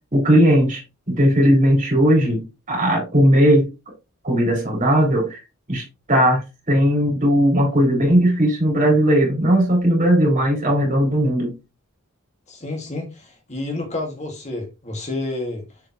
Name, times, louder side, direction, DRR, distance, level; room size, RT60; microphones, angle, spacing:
voice 1, 0.1-0.8 1.1-3.7 4.2-5.4 5.7-6.4 6.7-11.5, equal, 35° right, 3.8 m, -17 dB
voice 2, 12.5-15.8, left 2 dB, 30° left, 1.7 m, -30 dB
7.2 x 5.3 x 2.9 m
head